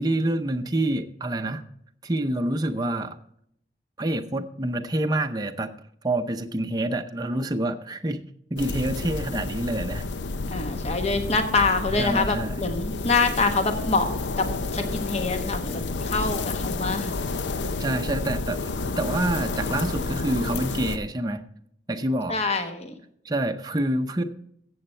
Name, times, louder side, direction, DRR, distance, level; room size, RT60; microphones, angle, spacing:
voice 1, 0.0-1.6 2.0-3.2 4.0-5.7 6.0-8.2 8.5-10.1 12.0-12.6 17.8-18.7 19.0-21.4 21.9-22.4 23.2-24.2, right 1 dB, 20° right, 5 dB, 0.6 m, -27 dB
sound 1, 8.6-21.0, left 3 dB, 90° left, 0.6 m, -30 dB
voice 2, 10.5-14.1 14.4-17.1 22.3-22.9, left 3 dB, 35° left, 7 dB, 1.1 m, -25 dB
14.5 x 7.9 x 4.4 m, 0.70 s
head